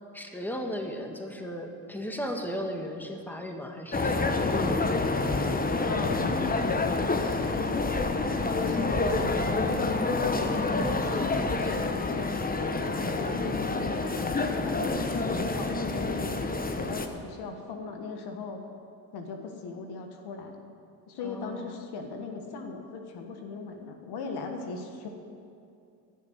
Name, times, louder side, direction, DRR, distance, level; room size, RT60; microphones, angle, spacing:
voice 1, 0.1-4.8 11.1-11.9 21.2-21.8, equal, 5° left, 3 dB, 1.7 m, -36 dB
sound 1, 3.9-17.1, left 3 dB, 20° left, 1.1 m, -28 dB
voice 2, 5.8-10.6 11.0-12.8 13.2-14.1 14.5-18.6 19.1-20.5 21.1-25.1, left 4 dB, 65° left, 4 dB, 1.5 m, -39 dB
15.0 x 6.6 x 8.0 m, 2.5 s
hypercardioid pair, 60°, 42 cm